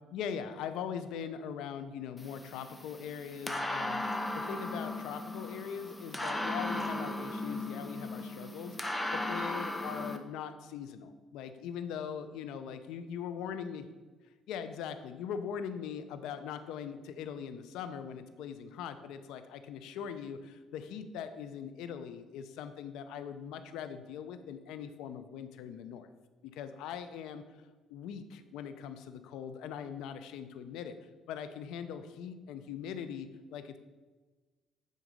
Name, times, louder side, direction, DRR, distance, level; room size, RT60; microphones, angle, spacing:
voice 1, 0.1-4.0 4.3-8.8 9.1-13.8 14.5-26.1 26.4-27.4 27.9-31.0 31.3-33.8, left 8 dB, 85° left, 10 dB, 0.5 m, -41 dB
sound 1, 2.2-10.2, left 1 dB, 10° left, 0.6 m, -37 dB
9.1 x 3.9 x 5.1 m, 1.3 s
cardioid pair, 135°, 0 cm